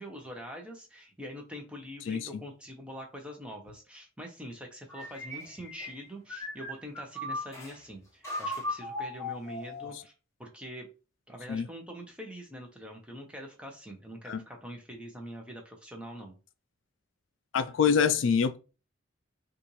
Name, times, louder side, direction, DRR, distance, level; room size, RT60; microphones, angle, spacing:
voice 1, 0.0-10.1 10.4-10.9 11.3-16.4, equal, 5° right, 0.9 m, -44 dB
sound 1, 4.9-7.8 8.2-10.0, left 1 dB, 15° left, 1.2 m, -37 dB
voice 2, 17.5-18.6, left 6 dB, 65° left, 0.4 m, -25 dB
5.7 x 2.5 x 3.1 m
head